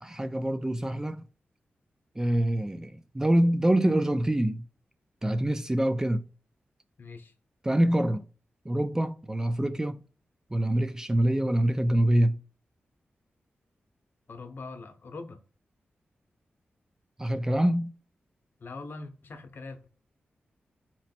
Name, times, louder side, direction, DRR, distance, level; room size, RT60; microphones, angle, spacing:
voice 1, 0.0-1.2 2.2-4.6 5.2-6.2 7.6-8.2 8.7-10.0 10.5-12.4 17.2-17.9, right 1 dB, 15° right, 0.3 m, -25 dB
voice 2, 7.0-7.3 14.3-15.4 18.6-19.9, left 3 dB, 60° left, 0.7 m, -42 dB
4.1 x 3.0 x 4.2 m
wide cardioid pair, 95°, 4 cm